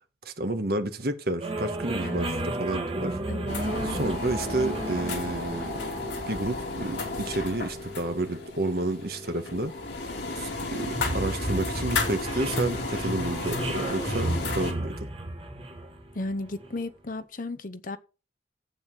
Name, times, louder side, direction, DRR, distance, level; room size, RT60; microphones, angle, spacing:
voice 1, 0.2-3.2 3.8-5.8 6.3-9.7 10.4-15.1, right 2 dB, 60° right, 1.4 m, -30 dB
sound 1, 1.4-16.8, right 1 dB, 35° right, 1.5 m, -34 dB
voice 2, 2.0-2.5 3.3-3.5 16.1-18.0, left 2 dB, 50° left, 0.8 m, -34 dB
sound 2, 3.5-14.7, left 3 dB, 85° left, 2.8 m, -33 dB
11.5 x 8.2 x 3.7 m
head